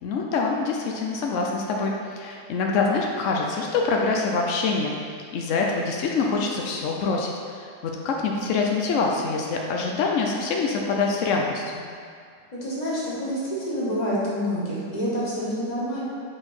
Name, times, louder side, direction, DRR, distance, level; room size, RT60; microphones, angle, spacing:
voice 1, 0.0-4.9 5.3-11.9, left 4 dB, 85° left, 0 dB, 0.6 m, -25 dB
voice 2, 12.6-16.0, equal, 25° left, -8 dB, 1.6 m, -27 dB
6.6 x 4.4 x 4.3 m, 2.2 s
omnidirectional pair, 2.0 m